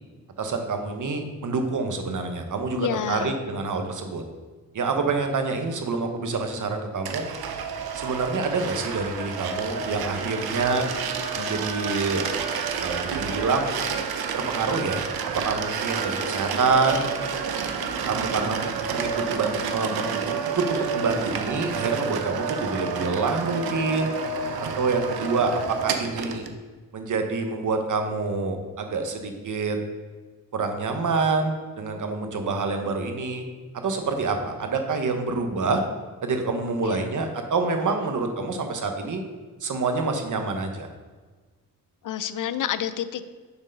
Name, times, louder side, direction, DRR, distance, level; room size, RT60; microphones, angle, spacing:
voice 1, 0.4-4.2 4.7-7.3 8.0-10.9 11.4-12.3 12.8-13.8 14.3-15.0 15.3-17.1 18.1-24.1 24.6-26.4 26.9-29.8 30.5-33.4 33.7-35.8 36.2-39.2 39.6-40.9, right 4 dB, 55° right, 5 dB, 1.1 m, -27 dB
voice 2, 2.8-3.4 36.8-37.1 42.0-43.2, left 9 dB, 60° left, 13 dB, 0.5 m, -29 dB
sound 1, 7.1-26.5, right 6 dB, 85° right, 0.7 m, -29 dB
6.8 x 4.6 x 5.3 m, 1.4 s
cardioid pair, 85°, 36 cm